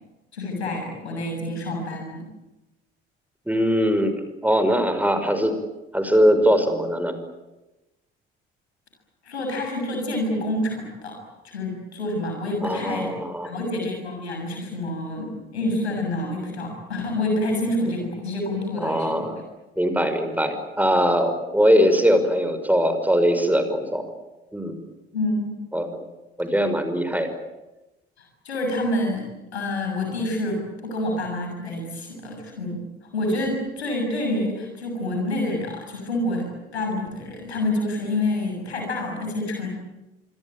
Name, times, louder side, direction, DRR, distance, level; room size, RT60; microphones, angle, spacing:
voice 1, 0.3-2.3 9.2-13.1 13.4-19.3 25.1-25.5 28.4-32.8 33.1-39.7, left 1 dB, 85° left, 2 dB, 7.2 m, -27 dB
voice 2, 3.5-5.6 5.9-7.2 12.6-13.5 18.8-19.4 19.8-24.1 24.5-24.8 25.7-25.9 26.4-27.3, equal, 5° right, 8 dB, 5.8 m, -21 dB
26.0 x 23.5 x 9.0 m, 1.0 s
figure-of-eight pair, 50°, 32 cm